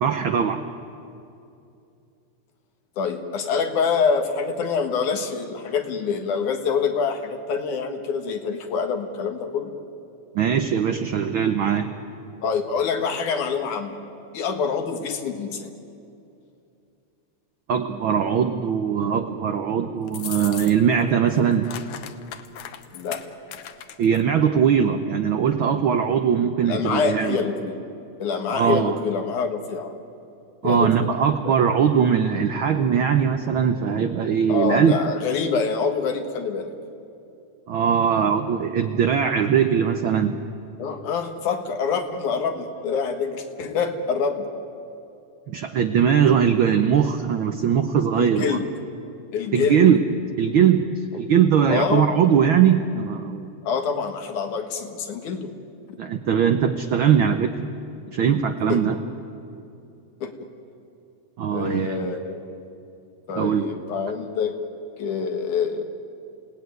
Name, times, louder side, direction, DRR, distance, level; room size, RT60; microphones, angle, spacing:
voice 1, 0.0-0.6 10.3-11.9 17.7-21.7 24.0-27.4 28.5-28.9 30.6-35.0 37.7-40.4 45.5-48.6 49.5-50.0 50.4-50.9 51.2-53.5 56.0-57.7 58.1-59.0 61.4-62.1 63.3-63.7, right 7 dB, 70° right, 5 dB, 1.2 m, -20 dB
voice 2, 3.0-9.7 12.4-14.0 14.3-15.7 22.9-23.2 26.6-27.8 28.2-29.9 30.6-31.1 31.4-31.6 34.5-36.7 40.8-44.5 48.2-48.7 49.3-49.8 51.7-52.1 53.6-55.5 55.9-56.0 58.7-58.8 60.2-60.5 61.5-62.4 63.3-64.6 65.0-65.8, left 5 dB, 85° left, 5 dB, 3.1 m, -26 dB
sound 1, 20.1-21.0 21.3-24.2, left 9 dB, 65° left, 1.6 m, -37 dB
28.5 x 18.0 x 9.4 m, 2.6 s
omnidirectional pair, 3.4 m